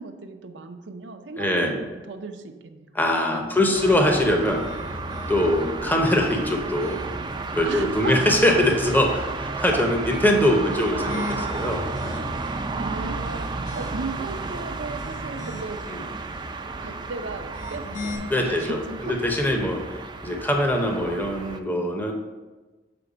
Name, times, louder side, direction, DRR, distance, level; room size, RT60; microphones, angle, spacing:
voice 1, 0.0-3.0 3.3-4.1 7.6-8.6 10.4-11.5 12.8-15.8 16.8-19.2, right 3 dB, 75° right, 7 dB, 0.6 m, -36 dB
voice 2, 1.4-1.8 2.9-4.6 5.3-7.0 7.5-12.3 15.9-16.0 18.3-18.8 19.0-19.8 20.2-22.1, left 1 dB, 10° left, 2 dB, 0.7 m, -22 dB
sound 1, 3.7-21.6, right 3 dB, 25° right, 0.4 m, -32 dB
sound 2, 4.4-5.7 6.3-7.4 7.9-9.0 10.5-12.6 13.1-14.3 14.8-15.9 17.4-18.2, left 3 dB, 40° left, 1.2 m, -39 dB
6.9 x 4.3 x 5.0 m, 1.2 s
head